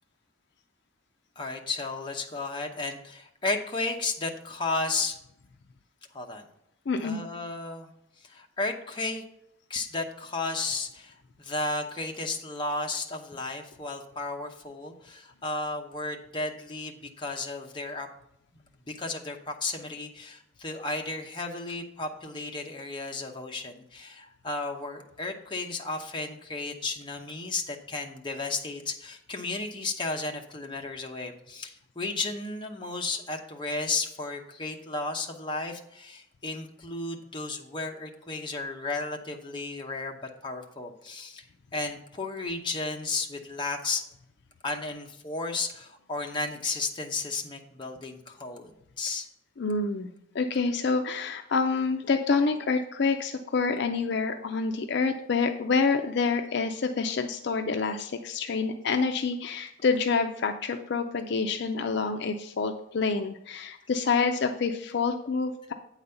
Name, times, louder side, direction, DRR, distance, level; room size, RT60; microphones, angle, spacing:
voice 1, 1.4-5.2 6.1-6.4 7.0-7.9 8.3-9.2 9.7-18.1 18.9-41.5 41.7-44.0 44.6-49.3, left 3 dB, 25° left, 2 dB, 0.9 m, -33 dB
voice 2, 6.9-7.2 49.6-50.1 50.3-65.7, left 4 dB, 55° left, 6 dB, 0.4 m, -27 dB
8.6 x 4.0 x 6.8 m, 0.78 s
head